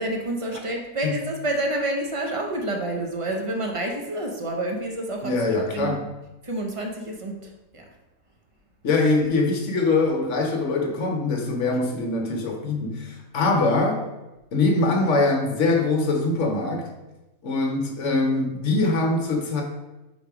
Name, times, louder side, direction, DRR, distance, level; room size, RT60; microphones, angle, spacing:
voice 1, 0.0-5.9 6.4-7.8, right 1 dB, 35° right, 1 dB, 0.5 m, -29 dB
voice 2, 5.2-6.0 8.8-14.0 14.5-16.9 17.4-19.6, left 3 dB, 60° left, 3 dB, 1.1 m, -23 dB
5.1 x 4.0 x 4.7 m, 1.0 s
omnidirectional pair, 1.5 m